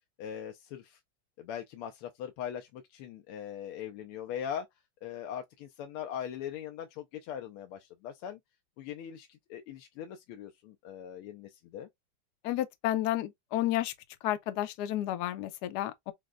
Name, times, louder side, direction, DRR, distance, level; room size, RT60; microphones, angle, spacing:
voice 1, 0.2-1.0 1.4-4.7 5.0-8.4 8.8-11.9, left 9 dB, 90° left, 1.5 m, -41 dB
voice 2, 12.4-13.9 14.2-16.1, left 13 dB, 70° left, 1.0 m, -31 dB
6.2 x 2.1 x 2.3 m
omnidirectional pair, 2.3 m